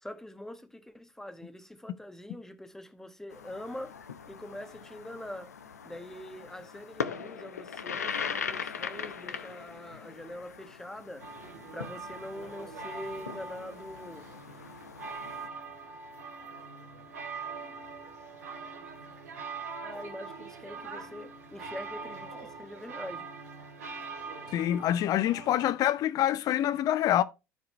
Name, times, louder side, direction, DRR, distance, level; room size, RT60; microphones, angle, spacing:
voice 1, 0.0-3.9 4.3-5.6 5.8-11.2 11.7-14.3 19.8-23.3, left 1 dB, 5° left, 1.4 m, -44 dB
sound 1, 3.3-15.5, left 6 dB, 80° left, 0.7 m, -40 dB
sound 2, 11.2-25.7, right 4 dB, 75° right, 2.2 m, -43 dB
voice 2, 24.5-27.2, left 12 dB, 45° left, 0.8 m, -26 dB
14.0 x 4.8 x 3.1 m
figure-of-eight pair, 65°, 8 cm